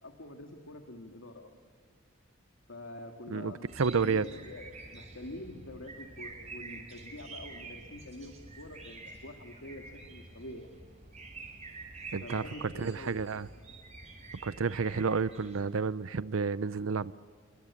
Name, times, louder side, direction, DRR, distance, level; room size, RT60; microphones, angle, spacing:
voice 1, 0.0-1.5 2.7-4.6 4.9-10.7 12.2-13.1, left 1 dB, 80° left, 2.1 m, -46 dB
voice 2, 3.3-4.2 12.1-13.5 14.4-17.1, right 5 dB, 85° right, 0.6 m, -31 dB
sound 1, 3.7-15.6, right 3 dB, 35° right, 5.9 m, -48 dB
28.5 x 24.5 x 8.4 m
head